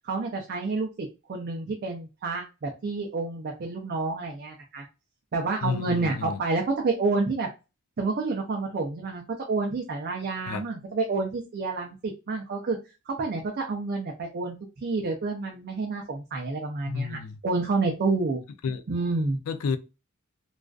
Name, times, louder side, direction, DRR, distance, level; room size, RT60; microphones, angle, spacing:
voice 1, 0.0-4.8 5.3-7.5 8.0-12.8 13.1-14.6 14.8-18.4 18.9-19.4, right 3 dB, 45° right, 0.4 m, -29 dB
voice 2, 5.6-6.4 10.5-10.6 16.9-17.4 18.6-18.8 19.5-19.8, left 5 dB, 75° left, 0.4 m, -30 dB
2.4 x 2.2 x 2.3 m
head